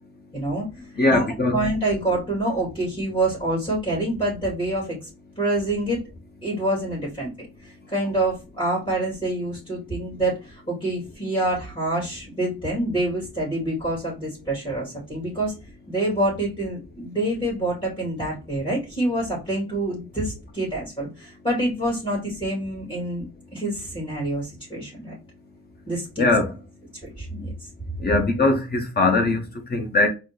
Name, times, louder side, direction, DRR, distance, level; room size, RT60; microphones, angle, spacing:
voice 1, 0.3-0.7 1.1-1.2 1.5-5.1 5.4-6.0 6.4-7.3 7.6-15.5 15.9-23.2 23.5-25.1 25.9-26.2 27.2-27.5, right 1 dB, 15° left, 2.1 m, -26 dB
voice 2, 0.9-1.6 26.2-26.6 28.0-30.1, left 2 dB, 30° left, 1.0 m, -21 dB
4.2 x 2.1 x 3.3 m
cardioid pair, 90°, 30 cm